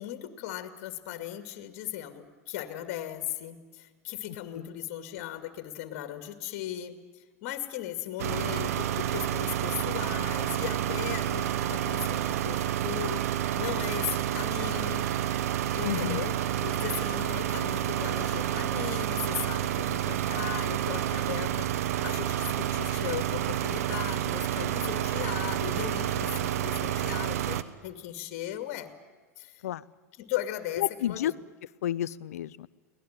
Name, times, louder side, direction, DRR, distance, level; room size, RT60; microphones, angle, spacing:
voice 1, 0.0-15.1 15.7-28.9 29.4-29.6 30.2-31.3, left 13 dB, 55° left, 8 dB, 2.4 m, -37 dB
sound 1, 8.2-27.6, right 11 dB, 70° right, 1.2 m, -29 dB
voice 2, 15.8-16.2 29.6-29.8 30.8-31.3 31.8-32.7, left 12 dB, 70° left, 20 dB, 0.7 m, -30 dB
24.0 x 18.5 x 9.1 m, 1.3 s
hypercardioid pair, 95°, 8 cm